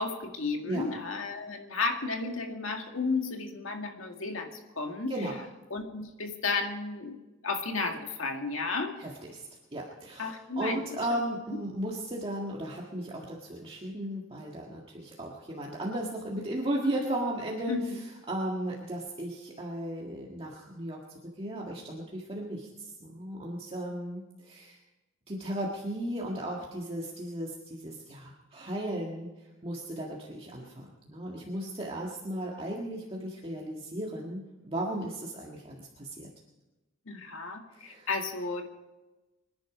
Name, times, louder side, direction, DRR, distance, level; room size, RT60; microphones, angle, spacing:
voice 1, 0.0-5.1 5.7-7.2 7.4-8.9 10.2-10.8 11.5-11.6 17.7-17.8 37.1-38.6, left 3 dB, 80° left, 3 dB, 2.1 m, -33 dB
voice 2, 9.0-9.4 9.7-21.0 21.4-24.8 25.3-36.3 37.8-38.1, right 1 dB, 30° right, -2 dB, 1.8 m, -35 dB
25.0 x 10.5 x 5.1 m, 1.1 s
head